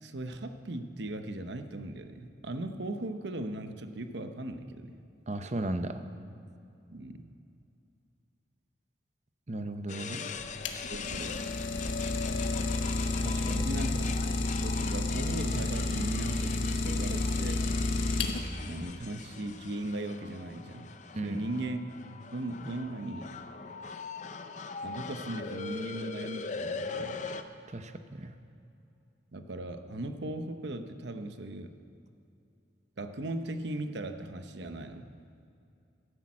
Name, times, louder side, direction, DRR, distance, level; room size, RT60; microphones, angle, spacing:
voice 1, 0.0-5.0 6.9-7.2 10.1-10.2 10.9-11.4 13.5-14.1 14.6-17.6 18.7-20.9 21.2-21.8 22.3-23.3 24.8-27.2 29.3-31.7 33.0-35.1, right 1 dB, 70° right, 8 dB, 0.9 m, -38 dB
voice 2, 5.3-6.0 9.5-10.2 13.2-13.7 21.1-21.5 27.7-28.3, right 2 dB, 35° right, 9 dB, 0.7 m, -35 dB
sound 1, 9.9-27.4, left 4 dB, 40° left, 0.6 m, -41 dB
Idling, 10.4-18.7, left 2 dB, 90° left, 1.2 m, -30 dB
12.5 x 10.5 x 7.3 m, 2.6 s
head